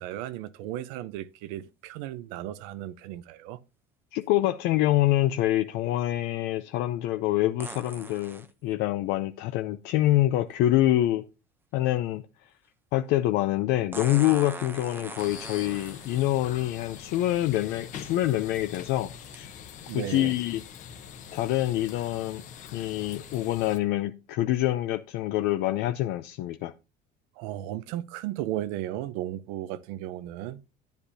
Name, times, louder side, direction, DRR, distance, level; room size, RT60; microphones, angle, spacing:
voice 1, 0.0-3.6 19.9-20.3 27.4-30.6, right 13 dB, 85° right, 0.8 m, -35 dB
voice 2, 4.1-11.2 11.7-12.2 12.9-19.5 19.9-20.6 21.3-22.4 22.7-26.7, left 14 dB, 55° left, 0.5 m, -26 dB
sound 1, 7.6-8.5 10.5-10.6 13.9-16.4 17.4-17.5 18.1-18.4 19.3-19.4, right 3 dB, 10° right, 0.6 m, -41 dB
sound 2, 15.2-23.8, left 8 dB, 35° left, 1.0 m, -44 dB
10.5 x 10.0 x 2.7 m
cardioid pair, 170°, 21 cm